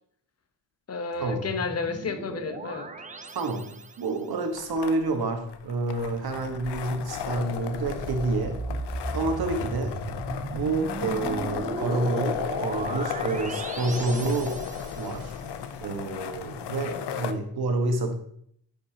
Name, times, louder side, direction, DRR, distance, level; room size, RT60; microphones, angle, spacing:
voice 1, 0.9-2.9, left 4 dB, 35° left, 8 dB, 0.9 m, -31 dB
sound 1, 1.2-4.3 7.6-15.3, right 3 dB, 20° right, 0.6 m, -37 dB
voice 2, 3.3-8.6 9.1-10.0 10.5-14.6 15.0-15.3 15.8-18.1, right 3 dB, 60° right, 5 dB, 1.5 m, -28 dB
sound 2, 4.6-17.3, left 8 dB, 70° left, 0.8 m, -35 dB
10.0 x 5.4 x 2.9 m, 0.68 s
cardioid pair, 95°, 42 cm